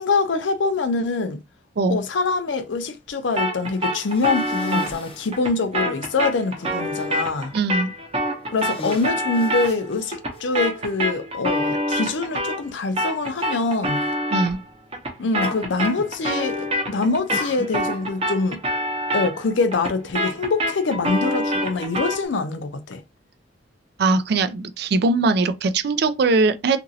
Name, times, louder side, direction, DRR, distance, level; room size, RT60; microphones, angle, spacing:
voice 1, 0.0-1.4 1.9-7.5 8.5-14.0 15.2-18.6 19.1-23.0, left 3 dB, 70° left, 0.5 m, -24 dB
sound 1, 3.4-12.7 13.0-22.3, equal, 30° right, 0.7 m, -27 dB
Cough, 3.8-5.4 6.1-6.2 6.6-7.1 7.8-8.1 8.5-10.4 11.4-11.5 13.3-13.5 13.9-14.2 15.4-16.1 16.4-16.8 17.3-18.1, left 2 dB, 30° left, 0.6 m, -38 dB
voice 2, 7.5-7.9 14.3-14.6 24.0-26.8, right 3 dB, 55° right, 0.4 m, -20 dB
2.9 x 2.5 x 2.7 m
head